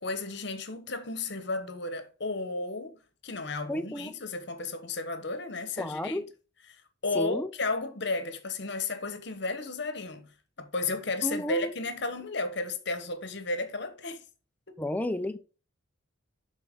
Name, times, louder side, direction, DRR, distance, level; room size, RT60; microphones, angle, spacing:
voice 1, 0.0-3.0 3.2-6.2 7.0-10.3 10.6-14.2 14.7-14.8, left 3 dB, 55° left, 1.1 m, -33 dB
voice 2, 3.7-4.2 5.8-6.2 7.1-7.5 11.2-11.7 14.8-15.4, left 1 dB, 10° left, 0.5 m, -32 dB
11.5 x 4.1 x 3.7 m
head